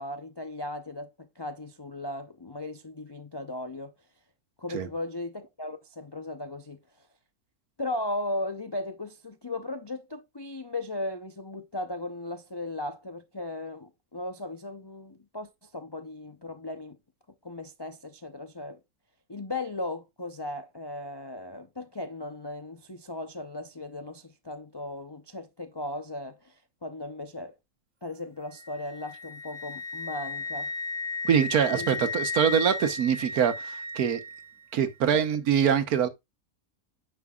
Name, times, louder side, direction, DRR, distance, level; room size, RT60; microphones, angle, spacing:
voice 1, 0.0-3.9 4.6-7.1 7.8-17.0 17.4-18.8 19.3-27.6 28.0-30.7 31.7-32.0 35.1-35.2, left 2 dB, 40° left, 0.3 m, -37 dB
Wind instrument woodwind instrument, 28.6-34.5, left 4 dB, 50° right, 1.7 m, -35 dB
voice 2, 31.2-34.2 34.7-36.1, right 8 dB, 75° right, 1.4 m, -24 dB
9.5 x 6.0 x 2.3 m
omnidirectional pair, 1.6 m